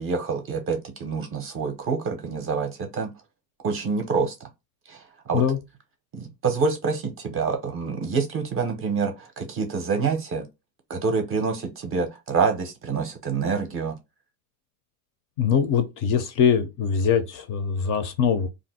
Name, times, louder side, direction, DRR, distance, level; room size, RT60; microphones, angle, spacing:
voice 1, 0.0-3.1 3.6-4.3 4.9-5.4 6.1-10.5 10.9-14.0, right 5 dB, 30° right, 0.5 m, -27 dB
voice 2, 15.4-18.5, left 7 dB, 45° left, 0.5 m, -22 dB
2.5 x 2.0 x 3.9 m
cardioid pair, 140°, 47 cm